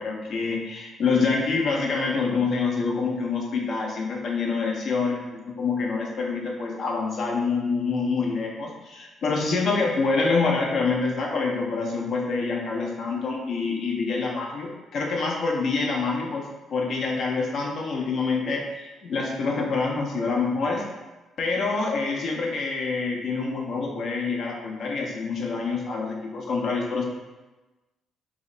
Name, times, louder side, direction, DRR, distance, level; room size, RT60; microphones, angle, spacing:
voice 1, 0.0-5.2 5.6-16.4 16.7-20.8 21.4-27.1, left 4 dB, 65° left, 0 dB, 0.6 m, -26 dB
2.8 x 2.1 x 3.8 m, 1.1 s
cardioid pair, 90°, 0 cm